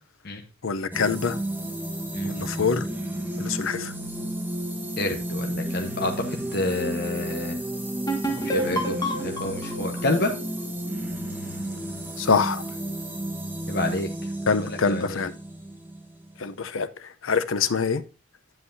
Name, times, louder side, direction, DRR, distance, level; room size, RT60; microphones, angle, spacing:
voice 1, 0.6-1.4 2.2-2.8 3.4-3.9 12.2-12.6 14.5-15.3 16.4-16.9 17.2-18.0, left 5 dB, 85° left, 0.7 m, -24 dB
sound 1, 0.9-16.7, right 1 dB, 10° right, 1.4 m, -32 dB
voice 2, 2.1-2.5 5.0-7.6 8.4-10.3 13.7-14.1 14.6-15.2, left 2 dB, 50° left, 1.1 m, -29 dB
sound 2, 8.1-11.6, right 1 dB, 20° left, 1.3 m, -30 dB
9.7 x 7.8 x 2.7 m
head